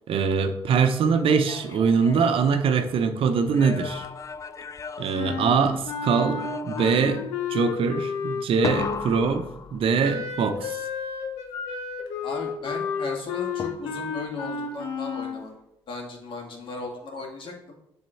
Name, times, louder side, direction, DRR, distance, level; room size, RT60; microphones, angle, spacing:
voice 1, 0.1-4.0 5.0-9.5 9.7-10.8, right 5 dB, 65° right, 7 dB, 0.8 m, -23 dB
sound 1, 1.1-3.0 3.5-5.9 6.3-7.3 8.6-10.2 13.6-14.2, left 5 dB, 30° left, 0.4 m, -36 dB
Wind instrument woodwind instrument, 5.1-9.3 10.0-15.4, left 5 dB, 85° left, 0.8 m, -31 dB
voice 2, 12.2-15.5 15.9-17.8, left 2 dB, 55° left, 0 dB, 2.1 m, -36 dB
7.5 x 3.6 x 5.7 m, 0.82 s
hypercardioid pair, 55°, 10 cm